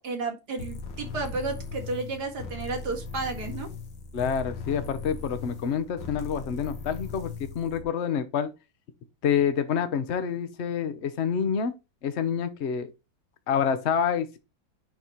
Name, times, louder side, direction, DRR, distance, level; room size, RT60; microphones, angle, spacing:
voice 1, 0.0-3.7, right 3 dB, 60° right, 2.3 m, -32 dB
sound 1, 0.6-7.8, left 4 dB, 75° left, 2.0 m, -38 dB
voice 2, 4.1-8.5 9.2-11.7 12.0-12.9 13.5-14.4, left 7 dB, 45° left, 1.0 m, -27 dB
10.0 x 4.1 x 3.1 m
omnidirectional pair, 2.1 m